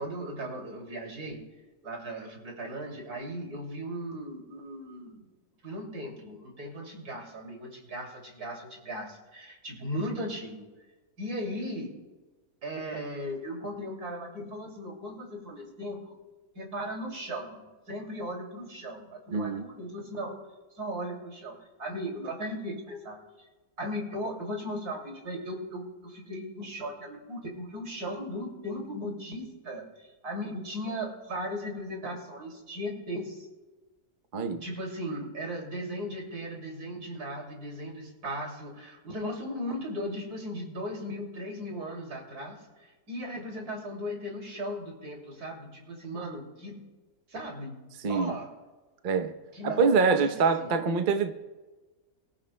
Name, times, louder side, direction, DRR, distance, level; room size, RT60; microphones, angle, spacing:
voice 1, 0.0-1.4 1.8-5.3 5.6-10.7 11.2-11.9 12.6-16.2 16.5-20.4 20.8-23.2 23.8-33.5 34.6-42.6 43.1-46.9 47.3-48.5 49.5-50.3 50.6-50.7, equal, 85° right, 0 dB, 3.2 m, -37 dB
voice 2, 19.3-19.7 34.3-34.6 48.0-48.4 49.0-49.3 49.6-51.3, right 5 dB, 40° right, 7 dB, 0.8 m, -25 dB
24.0 x 14.5 x 2.2 m, 1.2 s
omnidirectional pair, 1.6 m